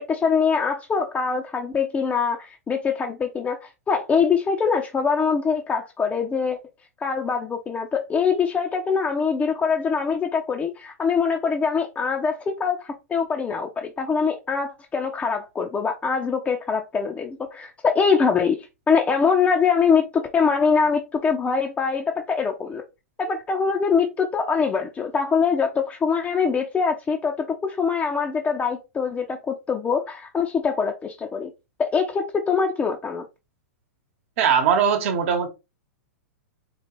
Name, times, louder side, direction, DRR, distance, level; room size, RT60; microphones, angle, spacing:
voice 1, 0.1-6.6 7.0-22.8 23.2-31.5 31.8-33.2, left 5 dB, 15° left, 0.5 m, -23 dB
voice 2, 34.4-35.5, right 7 dB, 60° right, 1.1 m, -20 dB
4.5 x 2.3 x 3.0 m
hypercardioid pair, 120°, 8 cm